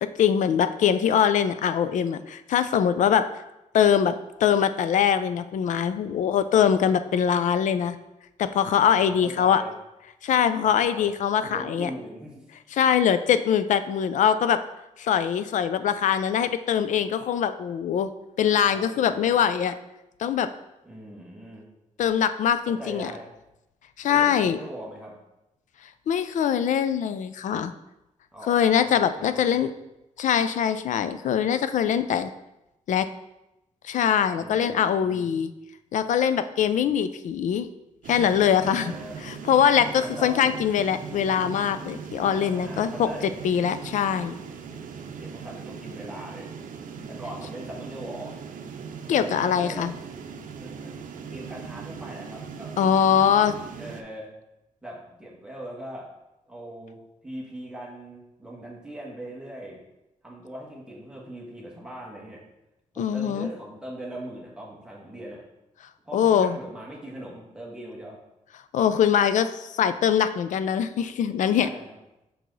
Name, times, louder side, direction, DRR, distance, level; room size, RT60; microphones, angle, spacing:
voice 1, 0.0-3.2 3.7-8.0 8.4-9.6 10.2-11.9 12.8-14.6 15.0-18.1 18.4-19.7 20.2-20.5 22.0-23.1 24.0-24.6 26.1-27.7 28.4-29.7 30.2-32.3 32.9-33.1 33.8-35.5 35.9-37.7 38.1-38.9 39.2-43.1 43.4-44.3 49.1-49.9 52.8-53.5 63.0-63.5 66.1-66.6 68.7-71.7, left 8 dB, 70° left, 11 dB, 0.4 m, -22 dB
voice 2, 9.0-9.7 10.6-11.1 11.5-12.4 18.6-19.4 20.8-21.6 22.7-23.3 24.1-25.1 28.3-29.7 34.4-35.3 38.2-39.2 40.0-40.6 42.3-43.3 45.2-46.5 47.1-48.3 49.1-49.9 50.6-50.9 51.3-52.7 53.3-53.5 53.8-54.3 54.8-56.1 56.5-59.8 60.2-62.4 62.9-65.4 66.0-68.2 71.6-72.0, right 1 dB, 5° right, -4 dB, 1.5 m, -40 dB
sound 1, 38.0-54.0, right 6 dB, 85° right, 0.6 m, -39 dB
6.0 x 4.6 x 3.9 m, 0.91 s
wide cardioid pair, 140°, 13 cm